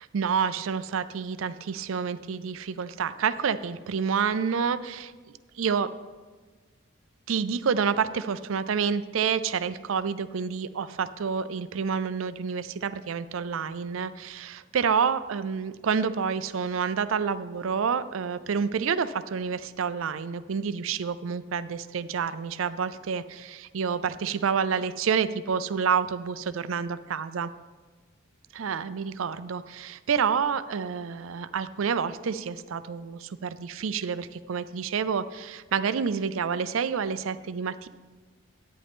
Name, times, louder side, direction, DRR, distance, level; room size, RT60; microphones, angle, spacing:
voice 1, 0.0-5.1 5.6-5.9 7.3-27.5 28.5-37.9, right 6 dB, 75° right, 14 dB, 0.4 m, -28 dB
11.0 x 9.4 x 3.6 m, 1.3 s
head